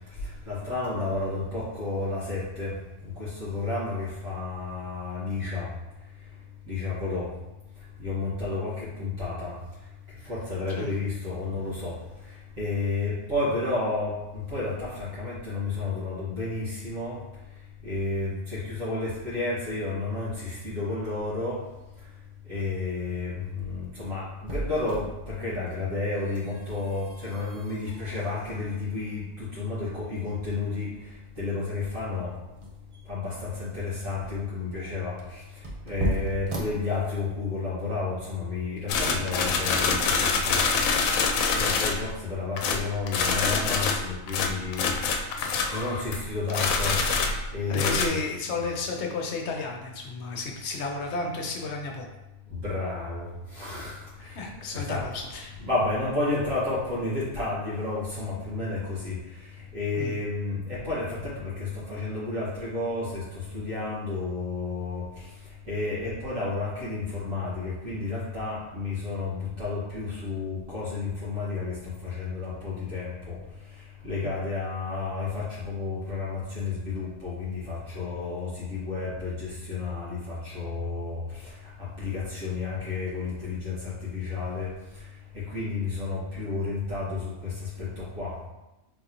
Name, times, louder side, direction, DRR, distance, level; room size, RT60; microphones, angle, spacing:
voice 1, 0.4-2.7 3.0-5.7 6.7-7.3 8.0-9.5 10.2-12.0 12.6-17.2 17.8-21.6 22.5-30.9 31.4-32.3 33.1-35.4 35.8-40.7 41.5-47.0 47.5-48.2 52.5-54.4 54.7-55.2 55.6-59.2 59.7-65.1 65.7-73.4 74.0-81.5 82.0-84.7 85.5-88.3, left 3 dB, 80° right, -11 dB, 2.1 m, -31 dB
sound 1, 23.3-37.5, right 1 dB, 50° right, 0.3 m, -38 dB
sound 2, 38.9-42.2 42.6-46.2 46.5-48.1, left 4 dB, 85° left, 1.0 m, -25 dB
voice 2, 47.7-52.1 54.3-55.5 59.9-60.2 74.2-74.3, left 3 dB, 60° left, 2 dB, 0.9 m, -32 dB
4.0 x 3.8 x 2.9 m, 0.96 s
omnidirectional pair, 1.4 m